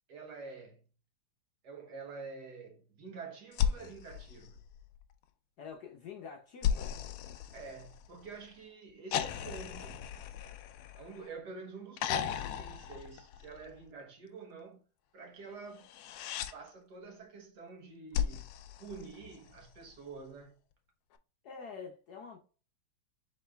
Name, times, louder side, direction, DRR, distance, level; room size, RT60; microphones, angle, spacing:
voice 1, 0.1-0.8 1.6-4.6 7.5-10.2 10.9-14.8 15.1-16.2 16.5-18.5 18.8-20.6, right 4 dB, 60° right, 1.5 m, -48 dB
sound 1, 3.5-5.1 6.6-8.3 9.1-11.4 12.0-13.8 15.8-16.5 18.1-19.6 21.1-21.2, left 9 dB, 85° left, 1.4 m, -36 dB
voice 2, 5.6-6.9 21.4-22.4, left 6 dB, 65° left, 1.0 m, -46 dB
4.2 x 3.8 x 3.3 m
omnidirectional pair, 2.2 m